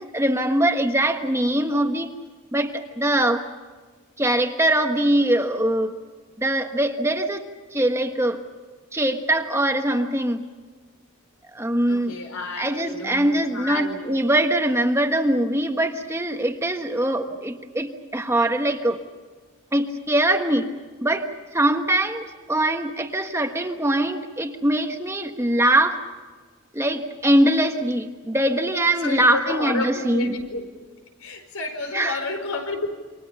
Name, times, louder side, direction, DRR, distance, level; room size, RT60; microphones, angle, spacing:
voice 1, 0.0-2.1 2.5-3.4 4.2-6.0 6.4-8.4 8.9-10.4 11.5-12.2 12.6-19.0 19.7-20.7 21.0-21.3 21.5-26.0 26.7-30.4 31.9-32.2, right 1 dB, 10° right, 5 dB, 1.3 m, -22 dB
voice 2, 11.9-14.2 29.0-30.7 31.2-32.9, left 3 dB, 85° left, 5 dB, 4.7 m, -30 dB
28.5 x 26.0 x 5.7 m, 1.4 s
head